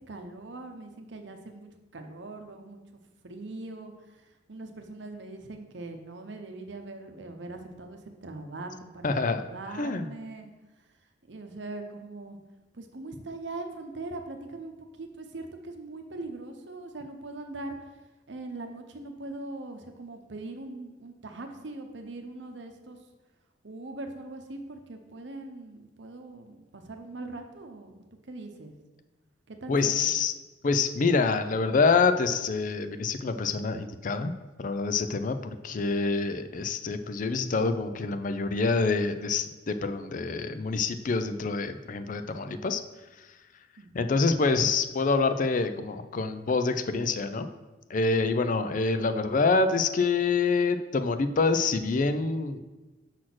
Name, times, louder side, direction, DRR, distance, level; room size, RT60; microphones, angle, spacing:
voice 1, 0.1-2.8 3.2-3.9 4.2-10.5 11.3-12.4 12.7-17.8 18.3-23.0 23.6-27.9 28.2-28.7 29.5-30.2 43.8-44.3, right 2 dB, 75° right, 5 dB, 0.8 m, -41 dB
voice 2, 9.0-9.4 9.8-10.1 29.7-30.3 30.6-34.3 34.6-42.8 43.9-47.5 47.9-52.6, left 4 dB, 45° left, 10 dB, 0.4 m, -26 dB
6.2 x 4.2 x 6.0 m, 1.1 s
head